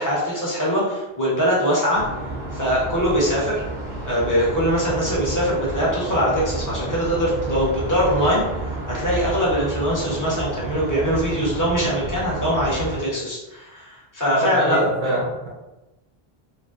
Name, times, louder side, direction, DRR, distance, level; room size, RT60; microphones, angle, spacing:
voice 1, 0.0-2.0 2.5-3.6 4.0-15.1, equal, 20° left, -6 dB, 0.8 m, -22 dB
sound 1, 1.9-13.0, right 2 dB, 50° right, 0.9 m, -30 dB
voice 2, 14.3-15.5, right 1 dB, 75° right, -5 dB, 1.1 m, -24 dB
3.0 x 2.6 x 2.4 m, 1.0 s
omnidirectional pair, 1.0 m